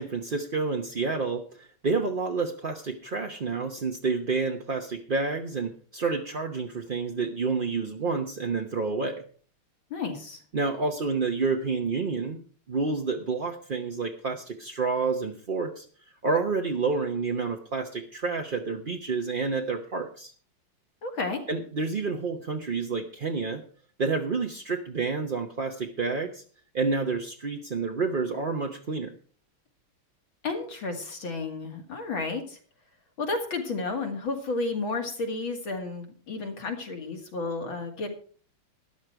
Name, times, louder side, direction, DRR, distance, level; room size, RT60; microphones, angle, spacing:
voice 1, 0.0-9.2 10.5-12.4 12.7-15.9 16.2-20.3 21.5-23.6 24.0-26.4 26.7-29.1, right 4 dB, 45° right, 3 dB, 0.6 m, -29 dB
voice 2, 9.9-10.4 21.0-21.4 30.4-32.6 33.2-38.1, left 3 dB, 70° left, 4 dB, 3.0 m, -32 dB
13.0 x 10.5 x 4.7 m, 0.43 s
omnidirectional pair, 2.3 m